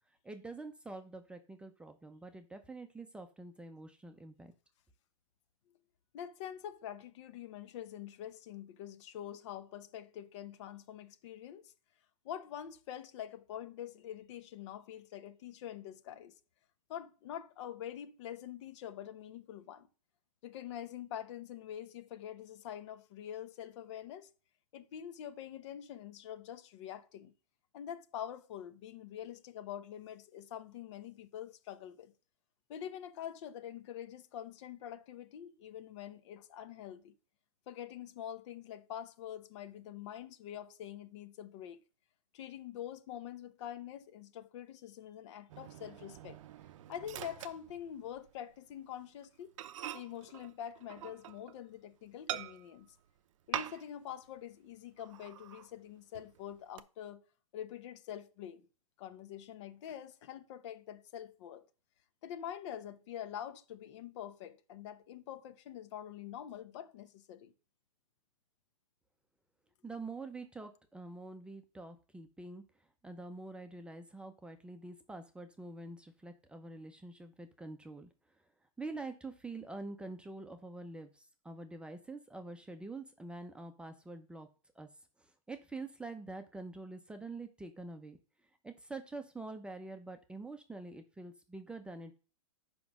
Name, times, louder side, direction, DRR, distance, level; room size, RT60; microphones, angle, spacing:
voice 1, 0.2-4.5 69.8-72.6 73.0-78.1 78.8-84.5 84.8-84.9 85.2-88.2 88.6-92.2, right 3 dB, 5° right, 0.6 m, -46 dB
voice 2, 6.1-11.7 12.2-16.3 16.9-19.9 20.4-24.3 24.7-27.3 27.7-32.1 32.7-37.1 37.7-41.8 42.3-46.4 46.9-49.5 49.9-53.0 53.5-57.2 57.5-58.7 59.0-61.6 62.2-67.5, left 10 dB, 55° left, 1.0 m, -45 dB
Microwave oven, 45.5-48.4 48.7-48.9 49.2-49.3 49.6-51.6 52.3-52.9 53.5-54.1 54.4-54.5 55.0-55.7 56.1-56.8, right 12 dB, 60° right, 0.6 m, -44 dB
5.9 x 5.3 x 6.0 m
hypercardioid pair, 125°, 18 cm